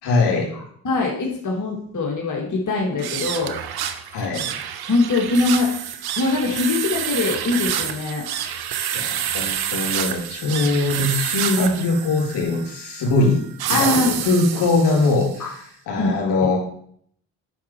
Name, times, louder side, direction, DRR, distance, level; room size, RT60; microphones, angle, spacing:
voice 1, 0.0-0.5 4.1-4.5 8.9-15.6 15.9-16.6, left 3 dB, 70° left, -1 dB, 3.9 m, -21 dB
voice 2, 0.8-3.6 4.9-5.7 6.2-8.2 11.6-11.7 13.7-14.2 15.4-15.5 16.0-16.1, left 3 dB, 45° left, -1 dB, 2.4 m, -22 dB
sound 1, 2.9-15.4, right 10 dB, 65° right, 0.9 m, -28 dB
8.3 x 5.7 x 4.6 m, 0.64 s
supercardioid pair, 55°, 41 cm